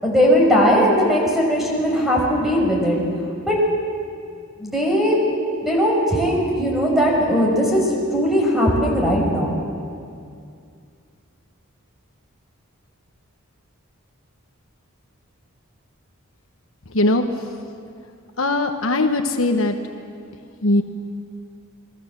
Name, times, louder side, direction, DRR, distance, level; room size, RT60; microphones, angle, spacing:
voice 1, 0.0-3.0 3.5-3.6 4.6-5.2 5.6-9.5, equal, ahead, -2 dB, 6.0 m, -18 dB
voice 2, 18.4-19.7 20.6-20.8, left 2 dB, 65° left, 6 dB, 1.3 m, -19 dB
28.5 x 21.0 x 7.6 m, 2.4 s
head